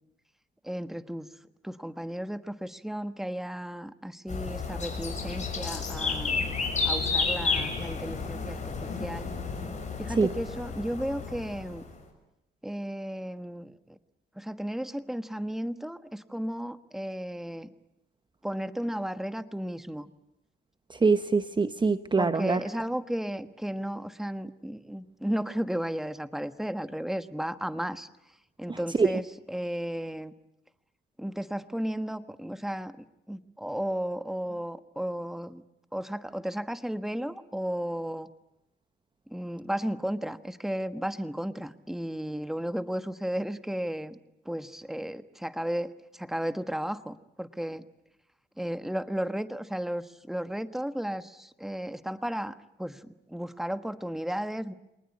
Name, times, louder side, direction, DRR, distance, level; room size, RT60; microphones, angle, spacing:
voice 1, 0.6-1.3 1.6-6.4 6.8-9.3 10.0-11.8 12.6-14.0 14.4-17.7 18.4-20.1 22.2-28.1 28.6-30.3 31.2-35.6 35.9-38.3 39.3-44.2 44.4-47.8 48.6-54.7, equal, ahead, 11 dB, 1.3 m, -34 dB
sound 1, 4.3-11.9, left 4 dB, 35° left, 6.6 m, -31 dB
voice 2, 20.9-22.6 28.7-29.1, right 4 dB, 25° right, 11 dB, 0.9 m, -24 dB
26.0 x 20.0 x 9.6 m, 0.89 s
cardioid pair, 90°, 20 cm